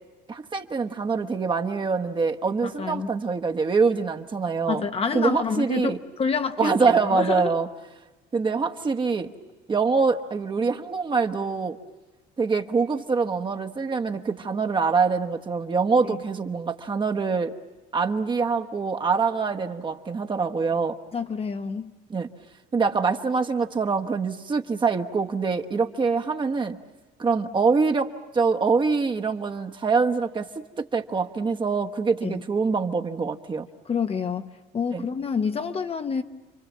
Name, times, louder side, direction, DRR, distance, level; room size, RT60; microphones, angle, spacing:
voice 1, 0.3-4.9 5.1-6.0 6.6-7.7 8.3-9.3 9.7-11.8 12.4-17.5 17.9-21.0 22.1-22.3 22.7-26.8 27.2-30.5 30.9-33.7 34.9-35.0, right 4 dB, 30° right, 4 dB, 1.2 m, -24 dB
voice 2, 2.8-3.1 4.7-7.6 16.0-16.2 21.1-21.9 32.2-32.3 33.9-36.2, left 6 dB, 35° left, 8 dB, 1.0 m, -28 dB
29.5 x 23.5 x 7.4 m, 1.2 s
cardioid pair, 110°, 17 cm